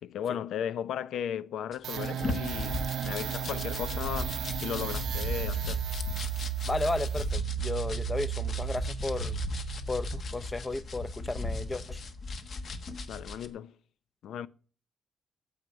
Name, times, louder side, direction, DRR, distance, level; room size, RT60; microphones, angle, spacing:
voice 1, 0.0-5.8 13.1-13.7 14.2-14.5, left 9 dB, 85° left, 0.6 m, -36 dB
sound 1, 1.7-13.5, left 2 dB, 45° left, 1.3 m, -36 dB
sound 2, 1.8-10.3, right 12 dB, 75° right, 0.6 m, -34 dB
voice 2, 6.6-9.4 9.9-12.0, left 2 dB, 15° left, 0.6 m, -34 dB
9.4 x 8.1 x 9.4 m
wide cardioid pair, 160°, 0 cm